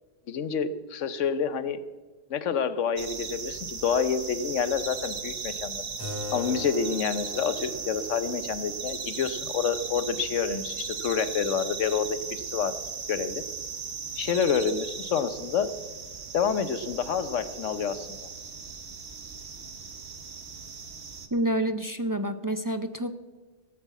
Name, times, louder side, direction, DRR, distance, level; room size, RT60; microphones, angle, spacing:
voice 1, 0.3-1.8 2.3-5.8 6.3-12.8 13.1-13.4 14.2-15.8 16.3-18.2, left 6 dB, 85° left, 13 dB, 1.2 m, -28 dB
sound 1, 3.0-21.3, right 5 dB, 65° right, 1.4 m, -37 dB
Keyboard (musical), 6.0-11.1, left 3 dB, 20° left, 3.4 m, -43 dB
voice 2, 21.3-23.1, right 1 dB, 30° right, 8 dB, 0.4 m, -28 dB
17.5 x 7.6 x 8.2 m, 1.3 s
omnidirectional pair, 1.2 m